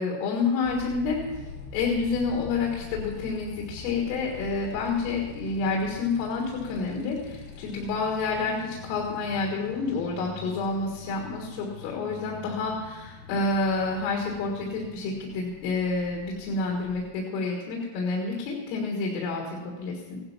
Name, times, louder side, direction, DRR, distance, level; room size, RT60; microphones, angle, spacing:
voice 1, 0.0-1.4 1.7-20.2, left 4 dB, 90° left, -1 dB, 4.3 m, -29 dB
Motorcycle, 0.6-17.1, left 4 dB, 65° left, 3.0 m, -44 dB
16.0 x 11.5 x 5.7 m, 1.2 s
omnidirectional pair, 5.7 m